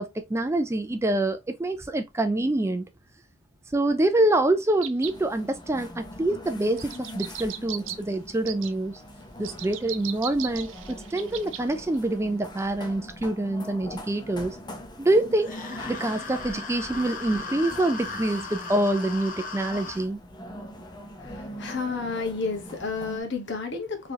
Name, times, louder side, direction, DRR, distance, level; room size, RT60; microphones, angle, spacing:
voice 1, 0.0-2.9 3.7-9.0 9.4-14.6 15.0-15.6 15.9-20.2, right 1 dB, 15° right, 0.4 m, -26 dB
sound 1, 4.8-5.2 6.8-8.0 8.5-8.7 9.4-11.6 11.9-12.0, right 12 dB, 65° right, 0.5 m, -37 dB
sound 2, 5.0-23.2, left 1 dB, 20° left, 0.7 m, -42 dB
sound 3, 15.4-20.0, left 4 dB, 40° left, 1.0 m, -37 dB
voice 2, 21.2-24.1, left 4 dB, 60° left, 1.2 m, -31 dB
4.5 x 3.2 x 2.8 m
head